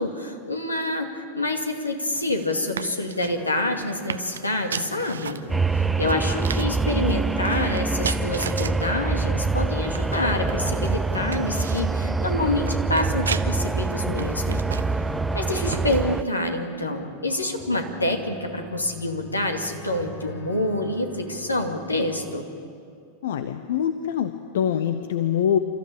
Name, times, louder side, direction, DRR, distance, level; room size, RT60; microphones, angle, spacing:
voice 1, 0.0-5.4 5.7-14.6 15.3-22.4, left 1 dB, 80° left, 4 dB, 2.3 m, -27 dB
sound 1, 2.1-16.2, right 7 dB, 70° right, 0.7 m, -38 dB
sound 2, 3.2-22.4, left 3 dB, 20° left, 3.1 m, -44 dB
sound 3, 5.5-16.2, right 3 dB, 10° right, 0.6 m, -25 dB
voice 2, 23.2-25.6, left 9 dB, 60° left, 10 dB, 0.8 m, -24 dB
28.5 x 14.0 x 8.7 m, 2.4 s
figure-of-eight pair, 90°, 0 cm